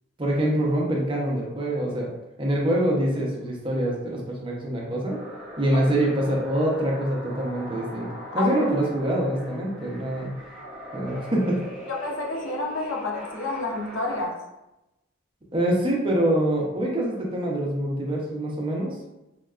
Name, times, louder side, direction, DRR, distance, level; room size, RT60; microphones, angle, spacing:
voice 1, 0.2-2.1 2.4-5.2 5.6-8.1 8.3-10.3 10.9-11.6 15.5-18.9, right 1 dB, 25° right, -2 dB, 0.5 m, -25 dB
sound 1, 5.1-14.3, equal, ahead, 1.1 m, -41 dB
voice 2, 11.9-14.4, left 2 dB, 75° left, 0 dB, 0.5 m, -29 dB
3.5 x 2.2 x 2.3 m, 0.95 s
head